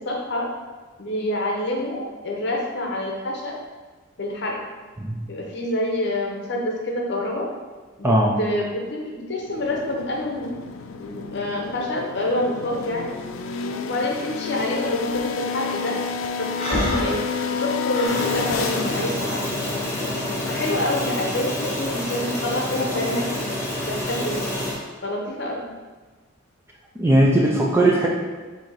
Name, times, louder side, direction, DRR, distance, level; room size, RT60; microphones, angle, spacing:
voice 1, 0.0-0.5 1.0-3.6 4.2-4.6 5.3-7.5 8.0-10.6 11.0-13.1 13.8-16.0 16.4-17.2 17.6-19.7 20.4-23.5 23.9-24.5 25.0-25.7, left 1 dB, 55° left, -1 dB, 0.8 m, -27 dB
voice 2, 8.0-8.4 27.0-28.1, right 1 dB, 10° right, -2 dB, 0.4 m, -18 dB
sound 1, 9.4-21.3, left 5 dB, 70° left, 0.3 m, -30 dB
Breathing, 16.6-18.3, equal, 30° left, 1.1 m, -27 dB
sound 2, 18.0-24.7, left 1 dB, 15° left, 0.8 m, -28 dB
4.1 x 2.7 x 4.6 m, 1.3 s
head